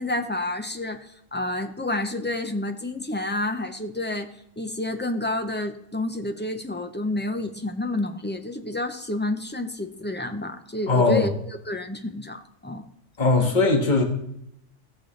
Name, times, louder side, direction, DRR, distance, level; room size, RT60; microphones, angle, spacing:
voice 1, 0.0-4.3 4.6-12.9, left 2 dB, 15° left, 6 dB, 0.3 m, -29 dB
voice 2, 10.9-11.3 13.2-14.0, left 3 dB, 35° left, 2 dB, 1.6 m, -19 dB
17.5 x 6.6 x 3.2 m, 0.76 s
omnidirectional pair, 1.4 m